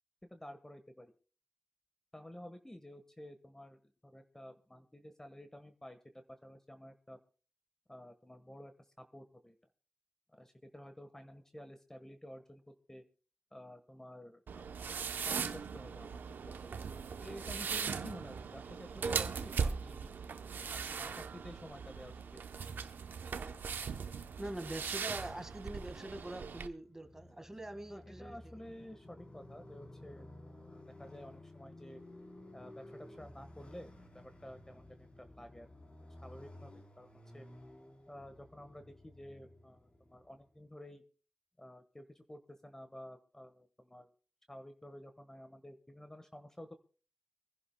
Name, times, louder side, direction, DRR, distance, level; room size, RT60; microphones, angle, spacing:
voice 1, 0.3-1.1 2.1-7.2 7.9-8.7 9.0-9.5 10.3-12.6 12.9-13.0 13.5-14.7 15.2-16.8 17.2-20.1 20.9-22.5 27.4-27.5 27.9-32.0 32.5-35.7 36.2-37.5 38.1-41.0 41.6-44.1 44.5-46.7, left 1 dB, 15° left, 8 dB, 1.4 m, -52 dB
sound 1, 14.5-26.7, right 6 dB, 80° right, 0.7 m, -39 dB
voice 2, 24.4-28.4, right 1 dB, 15° right, 8 dB, 1.7 m, -44 dB
Motorcycle, 26.7-40.6, left 1 dB, 40° left, 3.8 m, -56 dB
25.0 x 11.0 x 2.2 m, 0.38 s
cardioid pair, 55°, 3 cm